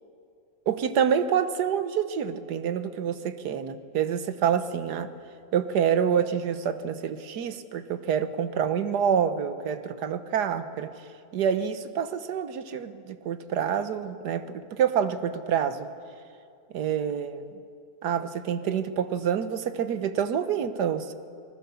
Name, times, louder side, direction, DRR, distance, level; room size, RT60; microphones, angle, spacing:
voice 1, 0.7-5.1 5.5-10.9 11.3-15.9 16.7-17.6 18.0-21.1, right 8 dB, 70° right, 11 dB, 1.6 m, -27 dB
27.5 x 20.0 x 7.0 m, 2.5 s
omnidirectional pair, 1.8 m